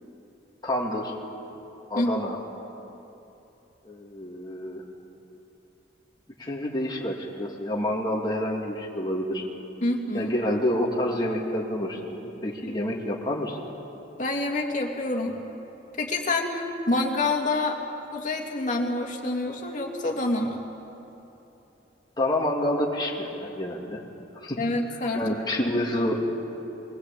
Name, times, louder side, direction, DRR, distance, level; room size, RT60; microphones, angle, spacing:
voice 1, 0.6-1.1 1.9-2.4 3.9-4.8 6.4-9.5 10.1-13.6 22.2-24.0 24.4-24.6 25.1-26.2, left 1 dB, 25° left, -2 dB, 2.4 m, -28 dB
voice 2, 9.8-10.3 14.2-15.4 16.0-17.8 18.1-20.6 24.6-25.2 25.6-25.7, left 2 dB, 45° left, 0 dB, 2.6 m, -27 dB
22.5 x 18.0 x 8.4 m, 3.0 s
head